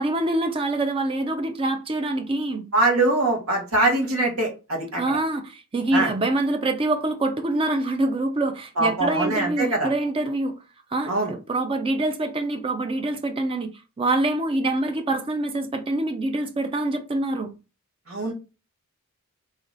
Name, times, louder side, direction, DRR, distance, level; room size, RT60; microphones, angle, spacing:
voice 1, 0.0-2.7 5.0-10.5 10.9-13.7 14.0-17.5, right 2 dB, 25° right, 0.4 m, -25 dB
voice 2, 2.7-5.0 5.9-6.1 8.8-9.9 11.1-11.3 18.1-18.3, right 2 dB, 75° right, 1.6 m, -22 dB
2.9 x 2.8 x 3.9 m
head